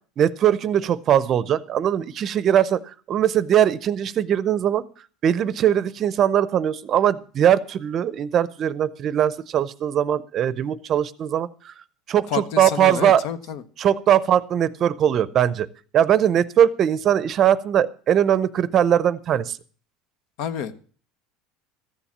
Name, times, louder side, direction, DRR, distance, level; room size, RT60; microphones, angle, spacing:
voice 1, 0.2-2.8 3.1-4.8 5.2-11.7 12.1-13.2 13.8-15.7 15.9-19.6, right 10 dB, 35° right, 17 dB, 0.6 m, -20 dB
voice 2, 12.3-13.6 20.4-20.7, left 8 dB, 65° left, 13 dB, 1.0 m, -29 dB
14.0 x 7.1 x 7.2 m, 0.42 s
cardioid pair, 145°, 0 cm